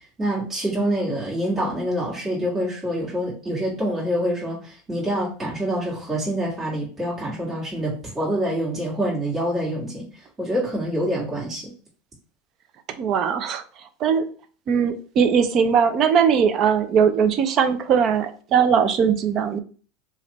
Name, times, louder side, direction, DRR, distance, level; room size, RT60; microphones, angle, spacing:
voice 1, 0.2-10.1 10.4-11.6, equal, 20° right, -7 dB, 1.8 m, -26 dB
voice 2, 13.0-13.6 14.0-14.3 14.7-19.6, right 7 dB, 40° right, 10 dB, 0.5 m, -20 dB
3.2 x 2.5 x 4.0 m, 0.39 s
supercardioid pair, 120°, 0 cm